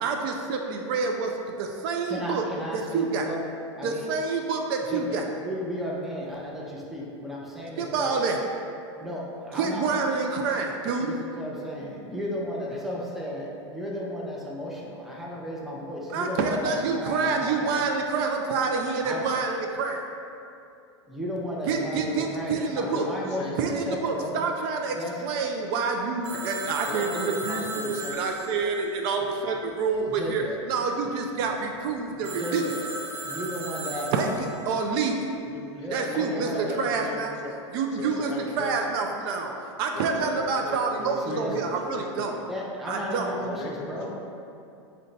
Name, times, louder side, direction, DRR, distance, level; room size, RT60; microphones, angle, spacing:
voice 1, 0.0-2.4 2.7-3.3 3.8-5.2 7.8-8.4 9.5-11.2 16.1-20.0 21.7-23.1 23.6-32.6 34.1-35.3 35.9-36.5 36.8-37.4 37.7-42.3 42.9-43.3, right 4 dB, 55° right, 2 dB, 0.4 m, -27 dB
voice 2, 2.1-3.4 3.8-4.1 4.9-8.1 9.0-10.0 11.0-17.8 19.0-19.3 21.1-24.4 25.0-25.2 30.1-30.6 32.1-32.8 33.2-34.1 35.5-36.7 41.2-41.6 42.5-44.1, equal, ahead, -4 dB, 0.6 m, -34 dB
voice 3, 22.8-23.6 26.3-26.4 26.9-28.2 35.8-35.9 36.1-37.6 37.9-38.8 39.9-42.5 43.3-44.1, left 3 dB, 45° left, 0 dB, 0.5 m, -37 dB
Telephone, 26.2-29.9 32.2-34.8, right 2 dB, 70° right, 0.8 m, -37 dB
3.7 x 2.2 x 3.9 m, 2.6 s
hypercardioid pair, 105°, 15 cm